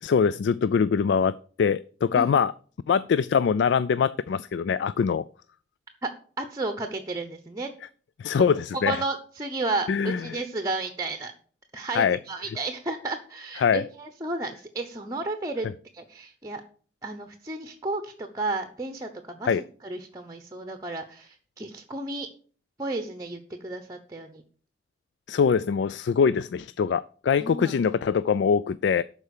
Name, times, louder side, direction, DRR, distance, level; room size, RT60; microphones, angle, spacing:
voice 1, 0.0-2.5 2.9-5.2 8.2-9.0 9.9-10.2 11.9-12.2 13.6-13.8 19.4-19.6 25.3-29.0, left 6 dB, 75° left, 0.3 m, -23 dB
voice 2, 6.4-7.7 8.7-11.3 11.7-16.6 17.0-22.3 22.8-24.4 27.4-27.8, right 2 dB, 20° right, 0.9 m, -33 dB
12.5 x 4.6 x 6.6 m
head